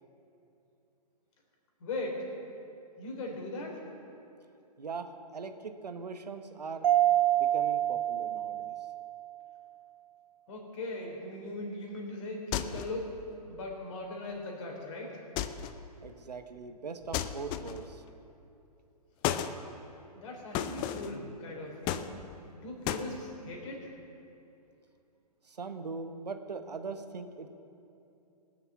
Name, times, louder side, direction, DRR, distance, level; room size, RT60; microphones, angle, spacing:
voice 1, 1.8-2.2 3.0-3.8 10.5-13.1 13.5-15.2 20.1-22.1 22.6-23.9, left 2 dB, 50° left, 0 dB, 3.4 m, -39 dB
voice 2, 4.8-6.9 7.3-8.7 16.0-18.0 25.4-27.5, right 4 dB, 80° right, 8 dB, 1.1 m, -41 dB
Mallet percussion, 6.8-9.4, right 12 dB, 55° right, 0.9 m, -27 dB
sound 1, 12.5-13.0 15.4-15.8 17.1-17.9 19.2-19.6 20.5-21.2 21.9-22.5 22.9-23.1, left 10 dB, 20° left, 0.4 m, -33 dB
19.5 x 6.6 x 7.0 m, 2.8 s
figure-of-eight pair, 125°, 21 cm